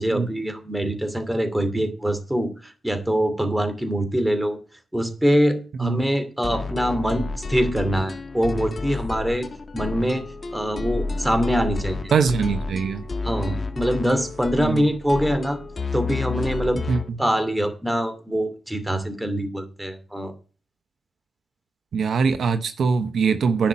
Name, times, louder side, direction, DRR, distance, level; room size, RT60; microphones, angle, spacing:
voice 1, 0.0-4.6 4.9-9.5 9.7-10.2 10.5-12.1 13.2-15.6 15.9-16.8 17.2-20.3, equal, 10° right, 2.5 m, -24 dB
sound 1, 6.4-17.1, left 3 dB, 40° left, 1.5 m, -31 dB
voice 2, 12.1-13.1 14.6-14.9 16.9-17.0 21.9-23.7, right 5 dB, 70° right, 0.9 m, -22 dB
10.5 x 5.9 x 8.5 m
cardioid pair, 85°, 0 cm